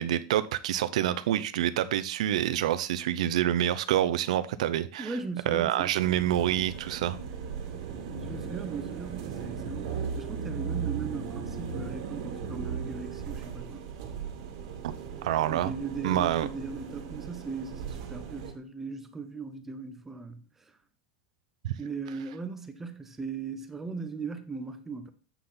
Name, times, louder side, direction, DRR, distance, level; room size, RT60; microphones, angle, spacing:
voice 1, 0.0-5.1 5.5-7.2 14.8-14.9 15.2-15.7 16.0-16.5 21.6-21.7, right 12 dB, 80° right, 0.7 m, -27 dB
voice 2, 5.0-5.9 8.2-13.8 15.5-20.8 21.8-25.1, right 4 dB, 10° right, 0.5 m, -38 dB
sound 1, 6.0-18.5, right 6 dB, 50° right, 2.3 m, -37 dB
8.3 x 5.8 x 4.0 m
supercardioid pair, 180°, 4 cm